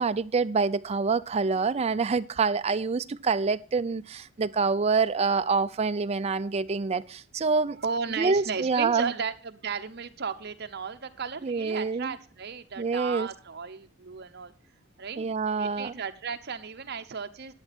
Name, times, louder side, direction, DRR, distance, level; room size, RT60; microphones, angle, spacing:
voice 1, 0.0-7.8 8.2-9.1 11.4-12.1 12.8-13.3 15.2-15.9, right 4 dB, 30° right, 0.4 m, -26 dB
voice 2, 7.8-14.5 15.0-17.5, right 5 dB, 55° right, 0.9 m, -35 dB
11.5 x 9.1 x 4.2 m
head